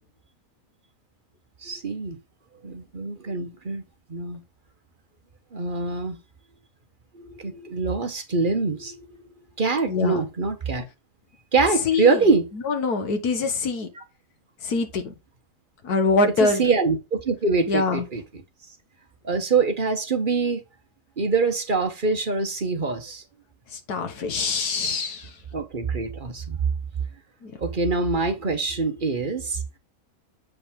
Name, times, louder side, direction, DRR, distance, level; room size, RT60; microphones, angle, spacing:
voice 1, 1.6-2.2 2.6-3.8 4.1-4.4 5.5-6.2 7.1-9.0 9.6-10.8 11.5-12.4 16.4-18.2 19.2-20.6 21.2-23.2 25.5-26.6 27.6-29.6, right 4 dB, 35° right, 1.2 m, -24 dB
voice 2, 9.9-10.3 11.9-12.2 12.6-13.9 14.6-15.1 15.8-16.7 17.7-18.1 23.7-25.3 27.4-27.5, left 3 dB, 80° left, 1.9 m, -24 dB
7.8 x 5.1 x 3.6 m
omnidirectional pair, 1.6 m